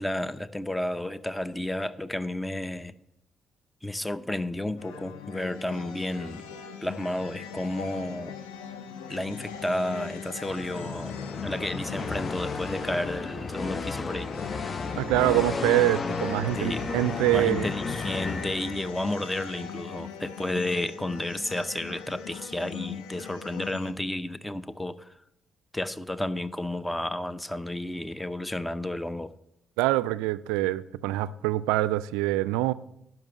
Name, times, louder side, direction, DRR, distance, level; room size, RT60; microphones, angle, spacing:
voice 1, 0.0-2.9 3.8-6.4 6.8-8.3 9.1-11.2 11.4-14.3 16.5-16.8 17.3-25.1 25.7-29.3, left 1 dB, 15° left, 0.7 m, -32 dB
sound 1, 4.8-23.9, left 7 dB, 85° left, 0.7 m, -41 dB
sound 2, 10.5-19.1, left 4 dB, 40° left, 0.6 m, -33 dB
voice 2, 15.0-17.7 29.8-32.7, right 17 dB, 80° right, 0.3 m, -25 dB
10.5 x 5.8 x 7.2 m
hypercardioid pair, 40°, 0 cm